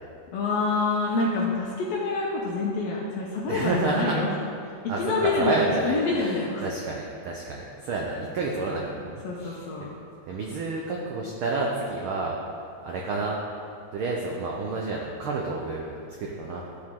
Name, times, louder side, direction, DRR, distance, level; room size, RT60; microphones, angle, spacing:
voice 1, 0.3-4.3 4.6-6.6 8.4-8.7 9.2-9.9, left 3 dB, 70° left, -3 dB, 1.8 m, -27 dB
voice 2, 3.4-4.2 4.9-9.6 10.3-12.4 12.8-13.4 13.9-16.7, right 3 dB, 90° right, -1 dB, 1.1 m, -29 dB
14.0 x 4.8 x 3.7 m, 2.5 s
omnidirectional pair, 3.4 m